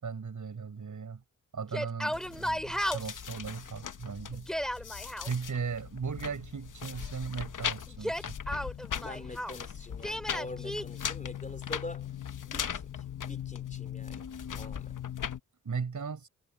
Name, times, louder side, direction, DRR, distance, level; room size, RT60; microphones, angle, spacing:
voice 1, 0.0-1.2 1.5-4.5 5.2-8.4 15.6-16.3, right 5 dB, 65° right, 6.4 m, -37 dB
Yell, 1.6-3.2 4.3-5.3 7.9-9.6 10.0-10.8, equal, ahead, 2.5 m, -34 dB
sound 1, 2.1-15.4, left 8 dB, 65° left, 1.0 m, -39 dB
voice 2, 9.0-12.1 12.4-15.0, left 2 dB, 25° left, 4.0 m, -45 dB
wide cardioid pair, 105°, 33 cm